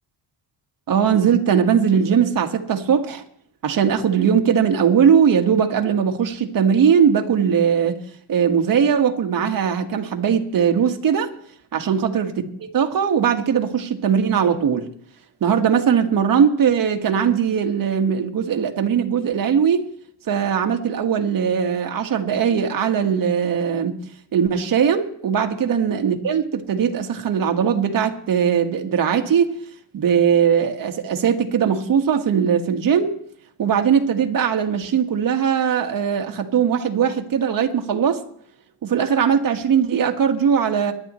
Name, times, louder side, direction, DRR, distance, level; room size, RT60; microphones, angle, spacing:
voice 1, 0.9-3.2 3.6-8.0 8.3-11.3 11.7-12.3 12.6-14.9 15.4-19.8 20.3-24.0 24.3-29.5 29.9-33.1 33.6-38.2 38.8-40.9, right 7 dB, 50° right, 4 dB, 1.6 m, -19 dB
23.5 x 11.0 x 3.1 m, 0.64 s
cardioid pair, 105°, 42 cm